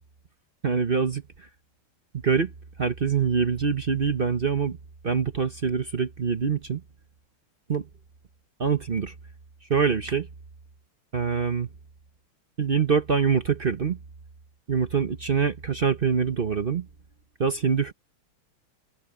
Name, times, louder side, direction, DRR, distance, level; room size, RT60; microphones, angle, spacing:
voice 1, 0.6-1.2 2.2-2.5 2.8-4.8 5.0-6.8 7.7-7.9 8.6-9.1 9.7-10.3 11.1-11.7 12.6-14.0 14.7-16.9 17.4-17.9, right 6 dB, 50° right, 0.6 m, -24 dB
omnidirectional pair, 2.4 m